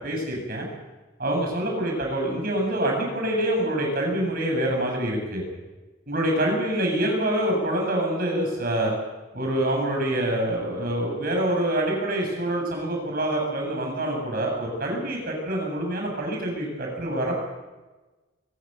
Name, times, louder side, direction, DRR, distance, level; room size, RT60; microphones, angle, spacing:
voice 1, 0.0-0.7 1.2-5.4 6.1-8.9 9.3-17.4, right 1 dB, 50° right, 0 dB, 7.9 m, -26 dB
23.0 x 16.0 x 9.1 m, 1.2 s
head